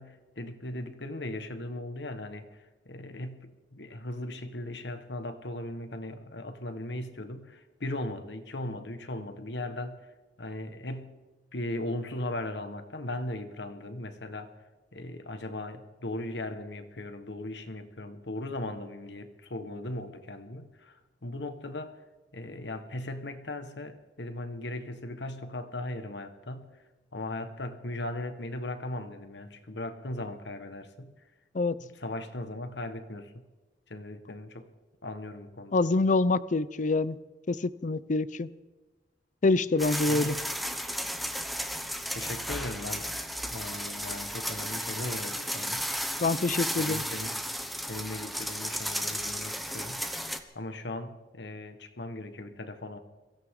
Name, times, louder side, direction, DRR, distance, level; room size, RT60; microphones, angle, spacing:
voice 1, 0.0-10.1 10.4-11.2 11.5-14.5 14.9-22.0 22.3-26.8 27.1-31.1 31.8-33.4 33.9-34.7 35.0-35.8 40.1-40.5 41.7-43.1 43.5-45.9 46.8-47.4 47.8-53.0, left 1 dB, 80° left, 1.5 m, -38 dB
voice 2, 35.7-37.2 37.5-38.5 39.4-40.4 46.2-47.0, left 3 dB, 45° left, 0.5 m, -26 dB
sound 1, 39.8-50.4, equal, ahead, 1.0 m, -34 dB
23.0 x 16.0 x 3.8 m
head